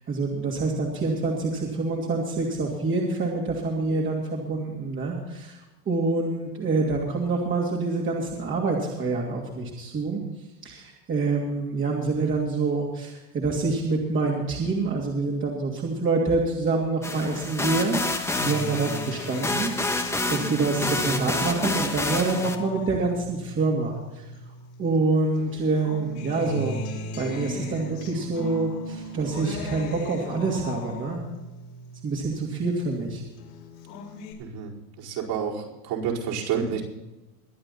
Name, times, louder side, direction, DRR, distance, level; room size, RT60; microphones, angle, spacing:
voice 1, 0.1-5.6 5.9-10.2 10.6-18.0 18.4-24.2 24.8-26.9 27.2-31.2 32.0-33.2, right 3 dB, 25° right, -2 dB, 2.7 m, -26 dB
sound 1, 17.0-22.6, left 2 dB, 5° left, 1.3 m, -28 dB
Acoustic guitar, 18.3-25.0 25.4-33.0 33.4-34.3, left 2 dB, 80° left, 5.2 m, -37 dB
voice 2, 34.4-34.7 35.0-36.8, right 7 dB, 50° right, -3 dB, 4.9 m, -29 dB
22.5 x 8.8 x 4.2 m, 1.0 s
supercardioid pair, 125°, 47 cm